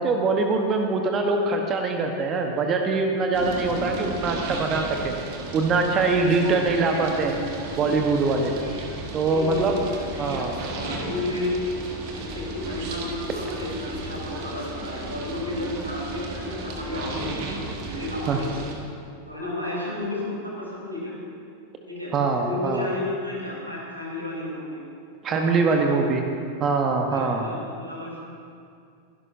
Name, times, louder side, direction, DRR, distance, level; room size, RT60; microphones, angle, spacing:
voice 1, 0.0-5.2 5.5-7.4 7.8-8.5 9.1-9.9 10.2-10.5 18.3-18.4 22.1-22.9 25.2-26.2 26.6-27.5, right 3 dB, 30° right, 3 dB, 1.1 m, -23 dB
sound 1, 3.3-18.7, right 2 dB, 45° right, 1.7 m, -34 dB
voice 2, 9.3-9.7 10.1-10.5 10.8-11.6 12.1-18.6 19.3-21.1 21.9-24.8 25.3-26.1 27.1-28.2, left 2 dB, 85° right, -5 dB, 3.9 m, -32 dB
22.5 x 12.0 x 2.7 m, 2.4 s
figure-of-eight pair, 90°, 0 cm